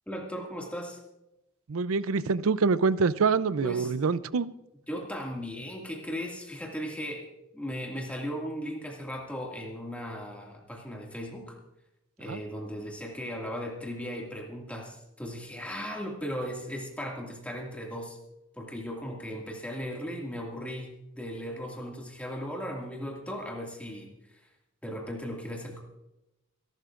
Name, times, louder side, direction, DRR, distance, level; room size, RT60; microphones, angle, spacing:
voice 1, 0.1-1.0 3.6-3.9 4.9-7.3 7.5-11.6 12.2-18.2 18.6-24.4 24.8-25.8, equal, 5° left, 0 dB, 2.1 m, -37 dB
voice 2, 1.7-4.5 12.3-12.4, right 4 dB, 85° right, 17 dB, 0.5 m, -25 dB
28.0 x 12.0 x 2.5 m, 0.94 s
head